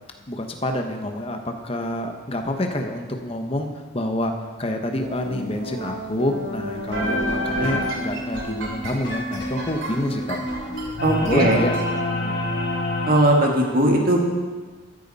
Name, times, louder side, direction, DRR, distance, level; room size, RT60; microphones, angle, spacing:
voice 1, 0.3-3.7 3.9-4.3 4.6-10.4 11.2-12.3, left 1 dB, 25° left, 4 dB, 1.0 m, -27 dB
sound 1, 5.0-11.8, equal, 70° right, 2.6 m, -30 dB
sound 2, 6.7-13.1, left 1 dB, 60° left, 4.4 m, -29 dB
voice 2, 11.0-11.6 13.1-14.2, right 1 dB, 45° right, 0 dB, 1.9 m, -18 dB
14.0 x 10.5 x 4.2 m, 1.4 s
head